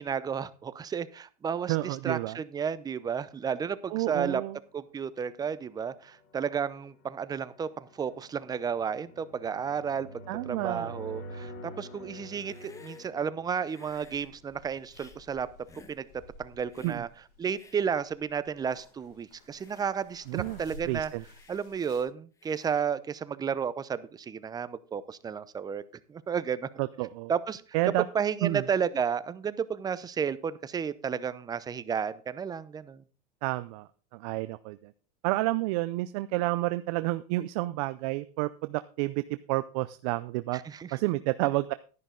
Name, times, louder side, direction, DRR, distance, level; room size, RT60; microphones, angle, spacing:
voice 1, 0.0-4.4 4.7-10.1 10.5-15.5 15.9-16.1 16.4-17.1 17.4-21.1 21.5-25.8 26.1-26.7 27.3-27.6 28.1-33.0 40.5-41.0, right 7 dB, 20° right, 15 dB, 0.7 m, -32 dB
voice 2, 1.7-2.4 3.9-4.6 10.3-10.9 16.8-17.0 20.3-20.6 20.9-21.2 26.8-27.3 27.7-28.1 28.4-28.6 33.4-34.9 35.2-40.6 40.9-41.7, right 19 dB, 65° right, 13 dB, 0.5 m, -30 dB
sound 1, 4.5-15.0, equal, 50° left, 2.7 m, -48 dB
Hiss, 12.3-13.1 13.7-14.3 14.9-15.2 15.7-16.0 16.7-17.0 17.5-17.8 18.4-18.5 18.7-19.0 19.5-19.9 20.3-20.7 21.2-21.6 22.4-22.8, left 4 dB, 15° left, 1.3 m, -53 dB
sound 2, 13.8-22.0, left 2 dB, 80° left, 5.6 m, -54 dB
10.5 x 10.5 x 3.8 m, 0.37 s
supercardioid pair, 125°, 19 cm